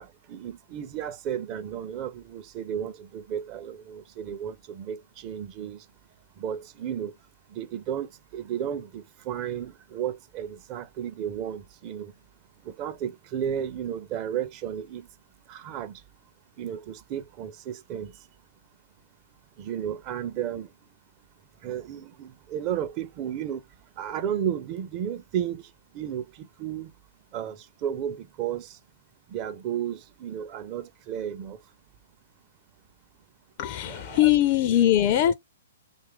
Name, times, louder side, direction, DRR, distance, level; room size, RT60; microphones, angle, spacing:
voice 1, 0.0-5.8 6.4-7.1 7.5-12.1 12.7-15.1 15.5-16.0 16.6-18.1 19.6-20.7 21.6-23.6 24.0-25.6 25.9-26.9 27.3-28.8 29.3-31.6 33.9-34.3, right 9 dB, 35° right, 0.5 m, -33 dB
voice 2, 33.6-35.3, left 12 dB, 40° left, 0.4 m, -21 dB
2.9 x 2.4 x 3.1 m
hypercardioid pair, 135°, 0 cm